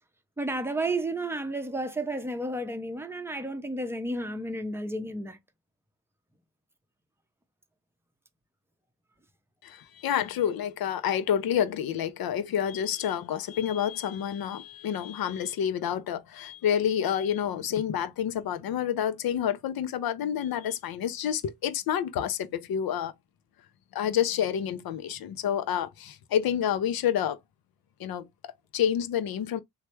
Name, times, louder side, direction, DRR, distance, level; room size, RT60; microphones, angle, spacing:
voice 1, 0.4-5.4, right 1 dB, 5° right, 0.7 m, -32 dB
voice 2, 9.6-23.1 23.9-27.4 28.0-29.6, left 9 dB, 60° left, 0.6 m, -29 dB
3.1 x 2.2 x 3.0 m
supercardioid pair, 45°, 41 cm